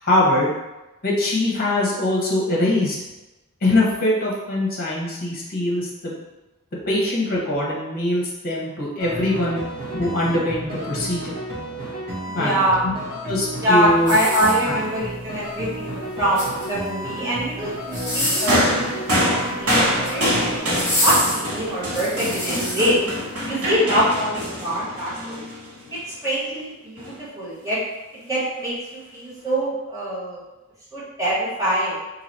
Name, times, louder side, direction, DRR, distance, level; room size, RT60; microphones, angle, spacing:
voice 1, 0.0-0.5 1.0-3.0 3.6-6.1 6.9-9.6 9.9-11.3 12.3-12.9 13.3-14.1, left 1 dB, 45° left, -4 dB, 1.0 m, -22 dB
sound 1, 9.0-20.6, right 1 dB, 45° right, 1.0 m, -32 dB
voice 2, 12.3-12.8 13.6-23.0 23.4-25.4 26.2-27.8 28.1-30.4 30.9-32.0, right 1 dB, 15° right, -9 dB, 1.2 m, -24 dB
sound 2, 14.0-15.0 16.1-16.9 17.8-18.7 19.8-20.2 20.7-22.9 23.5-23.6, left 1 dB, 10° left, 1.5 m, -26 dB
sound 3, 18.5-26.0 27.0-27.1, equal, 90° right, 1.5 m, -25 dB
2.9 x 2.8 x 4.1 m, 1.0 s
head